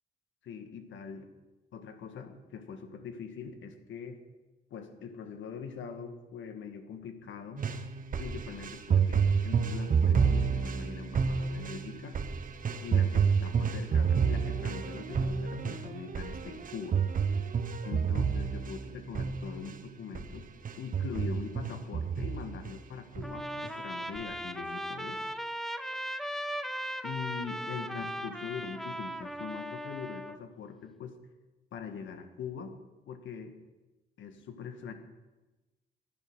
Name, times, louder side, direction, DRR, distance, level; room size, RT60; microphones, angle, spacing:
voice 1, 0.4-1.3 1.7-4.2 4.7-7.6 8.2-12.2 12.8-17.0 17.8-20.5 20.8-25.2 27.0-31.2 31.7-32.8 33.1-33.6 34.2-34.9, left 6 dB, 70° left, 7 dB, 1.9 m, -42 dB
sound 1, 7.6-19.8 20.2-20.3 20.7-22.8 23.2-23.7 24.2-24.3, right 6 dB, 45° right, 1.2 m, -29 dB
Trumpet, 23.2-30.4, equal, ahead, 0.8 m, -38 dB
14.5 x 10.5 x 6.3 m, 1.1 s
cardioid pair, 90°, 20 cm